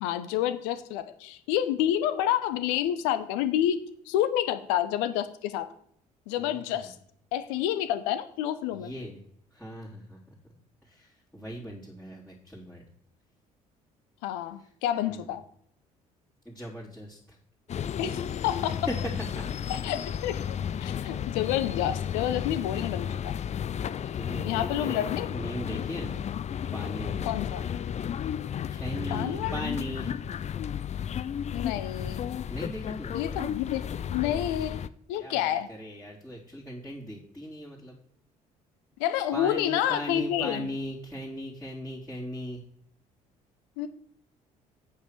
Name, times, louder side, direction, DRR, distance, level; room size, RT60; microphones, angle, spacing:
voice 1, 0.0-3.8 4.1-5.7 6.3-7.0 7.3-8.9 14.2-15.4 18.0-18.8 19.7-23.4 24.4-25.3 27.3-27.6 29.1-29.6 31.5-32.5 33.1-33.8 34.1-34.8 35.1-35.7 39.0-40.7 43.8-43.9, left 11 dB, 70° left, 12 dB, 0.8 m, -29 dB
voice 2, 6.3-6.9 8.7-9.2 9.5-10.4 10.8-12.8 14.6-14.7 15.1-15.3 16.4-17.4 18.7-19.5 24.1-26.2 26.7-27.3 28.7-30.2 32.5-33.2 35.2-38.0 39.3-42.6, equal, 5° left, -6 dB, 3.6 m, -38 dB
sound 1, 17.7-34.9, left 8 dB, 35° left, 0.5 m, -33 dB
8.6 x 5.7 x 6.7 m, 0.68 s
hypercardioid pair, 50°, 19 cm